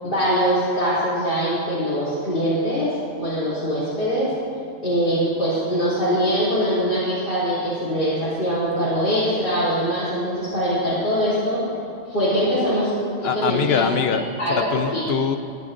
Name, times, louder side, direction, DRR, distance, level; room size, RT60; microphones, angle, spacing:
voice 1, 0.0-2.9 3.2-4.3 4.8-11.6 12.1-13.8 14.4-14.7 14.9-15.0, equal, 45° left, -12 dB, 3.2 m, -22 dB
voice 2, 13.2-15.4, left 7 dB, 60° left, 8 dB, 0.8 m, -23 dB
21.0 x 9.5 x 2.6 m, 2.5 s
omnidirectional pair, 1.3 m